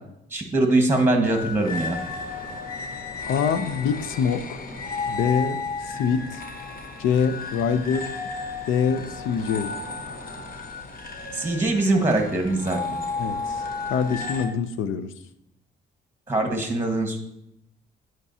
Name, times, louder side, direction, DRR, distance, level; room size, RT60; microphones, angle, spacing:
voice 1, 0.3-2.0 11.3-12.8 16.3-17.2, right 2 dB, 10° right, 4 dB, 1.4 m, -22 dB
sound 1, 1.2-14.5, left 4 dB, 45° left, 1.0 m, -33 dB
voice 2, 3.3-4.6 5.0-6.4 7.0-8.1 8.7-9.7 13.2-13.6 13.9-15.1, left 6 dB, 85° left, 12 dB, 0.6 m, -25 dB
11.0 x 4.5 x 2.8 m, 0.79 s
cardioid pair, 90°, 20 cm